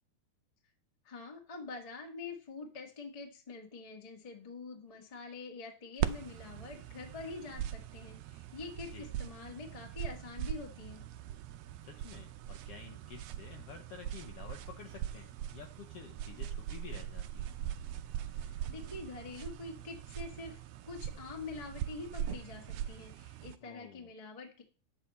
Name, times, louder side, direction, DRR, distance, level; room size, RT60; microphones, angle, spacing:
voice 1, 1.0-11.0 18.3-20.6 20.8-24.6, left 4 dB, 30° left, 2 dB, 0.6 m, -45 dB
sound 1, 6.0-23.6, right 11 dB, 85° right, 1.4 m, -41 dB
voice 2, 11.8-17.5 23.6-24.1, left 7 dB, 75° left, 4 dB, 1.4 m, -51 dB
10.0 x 8.1 x 4.1 m, 0.38 s
omnidirectional pair, 3.6 m